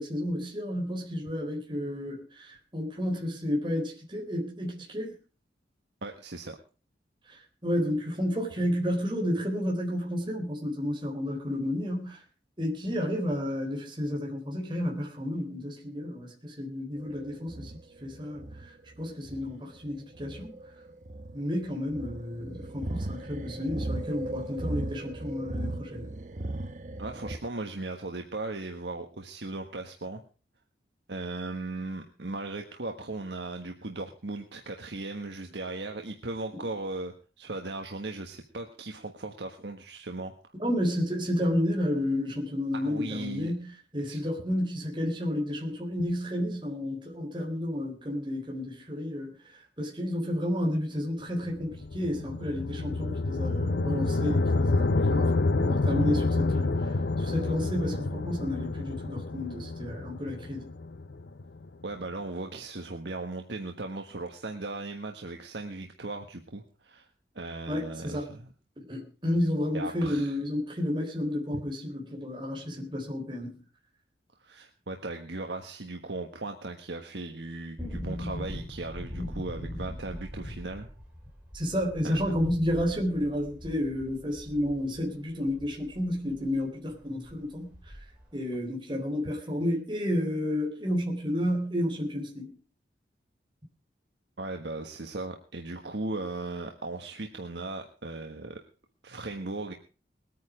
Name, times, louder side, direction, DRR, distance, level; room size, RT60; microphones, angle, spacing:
voice 1, 0.0-5.1 7.3-12.2 12.6-17.7 18.0-18.7 19.0-20.6 21.3-26.1 40.6-49.3 49.8-60.7 67.7-68.3 68.8-73.6 81.5-87.7 88.3-92.5, left 1 dB, 25° right, 3.8 m, -31 dB
voice 2, 6.0-6.6 27.0-30.2 31.1-40.3 42.7-43.5 44.0-44.2 61.8-67.1 67.3-68.5 69.7-70.4 74.4-80.9 82.0-82.2 94.4-98.6 99.0-99.7, right 2 dB, 80° right, 1.4 m, -37 dB
sound 1, 17.0-27.4, right 2 dB, 45° right, 1.0 m, -37 dB
sound 2, 51.4-61.7, left 3 dB, 80° left, 0.7 m, -28 dB
sound 3, 77.8-86.6 86.9-87.0 87.2-88.3 88.5-88.6, equal, 5° right, 4.4 m, -40 dB
20.5 x 9.4 x 4.9 m
head